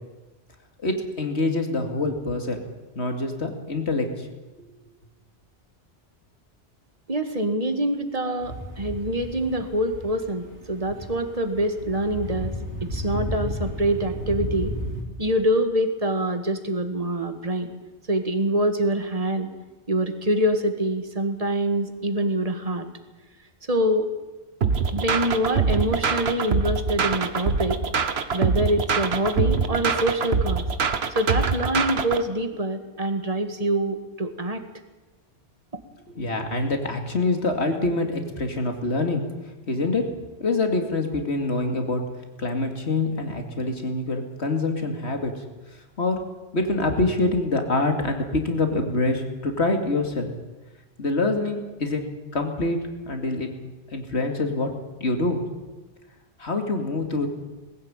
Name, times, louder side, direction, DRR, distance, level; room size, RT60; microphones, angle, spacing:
voice 1, 0.8-2.7 3.0-4.3 36.1-39.2 39.7-40.1 40.4-42.0 42.4-45.4 46.0-46.2 46.5-50.3 51.0-52.8 53.1-53.5 53.9-55.4 56.4-57.3, left 2 dB, 75° left, 4 dB, 2.8 m, -25 dB
voice 2, 7.1-12.5 12.8-14.7 15.2-17.7 18.1-19.5 19.9-22.9 23.7-24.1 24.9-27.8 28.3-30.6 31.2-34.6, right 1 dB, 35° right, 7 dB, 1.9 m, -25 dB
sound 1, 8.4-15.0, equal, 85° right, 3.6 m, -33 dB
sound 2, 24.6-32.2, right 5 dB, 70° right, 1.4 m, -24 dB
20.0 x 16.0 x 9.0 m, 1.1 s
omnidirectional pair, 1.1 m